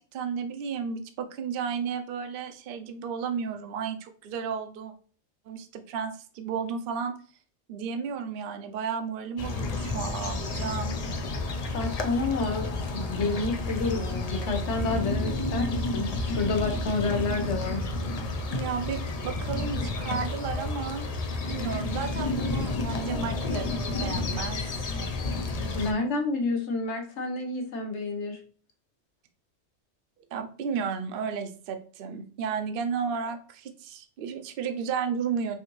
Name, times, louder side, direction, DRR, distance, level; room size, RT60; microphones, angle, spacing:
voice 1, 0.0-4.9 5.5-7.1 7.7-11.0 18.5-21.1 21.5-23.7 24.0-25.0 30.3-35.6, right 6 dB, 60° right, 7 dB, 0.7 m, -33 dB
sound 1, 9.4-25.9, left 2 dB, 50° left, 0.5 m, -31 dB
voice 2, 11.7-17.9 25.7-28.4, left 3 dB, 80° left, 4 dB, 1.2 m, -29 dB
5.5 x 2.7 x 3.0 m, 0.42 s
omnidirectional pair, 1.2 m